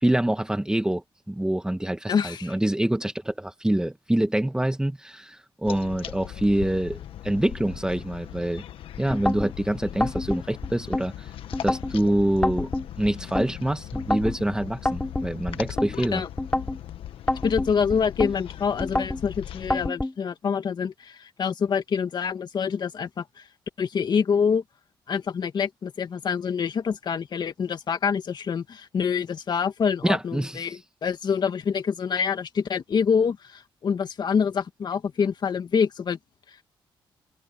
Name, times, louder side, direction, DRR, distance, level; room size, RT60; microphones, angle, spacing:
voice 1, 0.0-8.6 9.0-11.3 11.6-12.7 13.0-16.2 30.0-30.8, right 1 dB, 10° right, 1.7 m, -26 dB
voice 2, 2.1-2.5 16.1-16.3 17.4-23.2 23.8-24.6 25.1-36.2, left 6 dB, 55° left, 2.3 m, -26 dB
sound 1, 5.6-19.9, left 11 dB, 80° left, 1.4 m, -39 dB
sound 2, 9.1-9.5 10.0-11.1 11.5-11.9 12.4-13.5 13.9-14.4 14.9-15.9 16.4-16.8 17.3-18.3 18.8-19.2 19.7-20.1, left 1 dB, 15° left, 3.6 m, -27 dB
cardioid pair, 90°, 9 cm